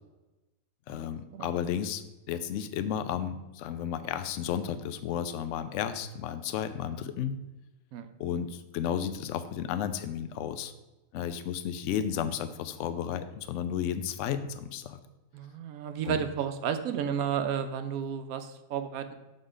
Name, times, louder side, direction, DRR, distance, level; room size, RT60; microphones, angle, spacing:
voice 1, 0.9-2.0 2.3-7.3 8.2-10.7 11.1-15.0 16.0-16.2, left 9 dB, 65° left, 11 dB, 0.8 m, -33 dB
voice 2, 15.3-19.1, right 8 dB, 80° right, 9 dB, 1.1 m, -32 dB
6.5 x 3.9 x 4.9 m, 1.0 s
omnidirectional pair, 1.5 m